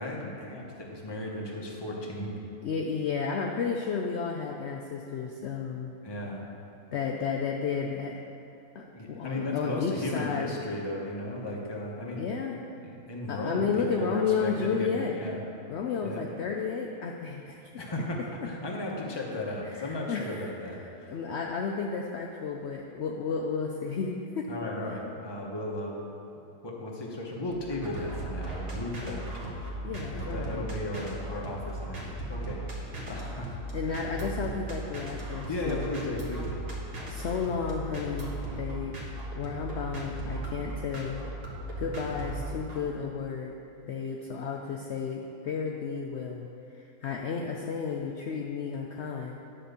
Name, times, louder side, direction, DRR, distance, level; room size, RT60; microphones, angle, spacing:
voice 1, 0.0-2.3 6.0-6.4 8.9-12.3 12.8-15.4 16.0-16.2 17.8-21.1 24.5-26.0 26.6-29.6 30.1-33.6 33.8-34.3 35.5-36.6, left 1 dB, 20° left, -2 dB, 0.9 m, -35 dB
voice 2, 2.6-5.9 6.9-8.2 8.7-10.5 12.2-12.6 13.3-15.1 15.7-17.8 19.6-20.8 21.0-24.5 29.8-30.8 33.7-35.9 37.1-39.0 39.3-41.2 41.8-43.5 43.9-49.4, left 5 dB, 70° left, 1 dB, 0.6 m, -32 dB
sound 1, 27.5-42.8, right 1 dB, 40° right, 1.4 m, -37 dB
10.0 x 4.4 x 6.8 m, 2.7 s
omnidirectional pair, 1.7 m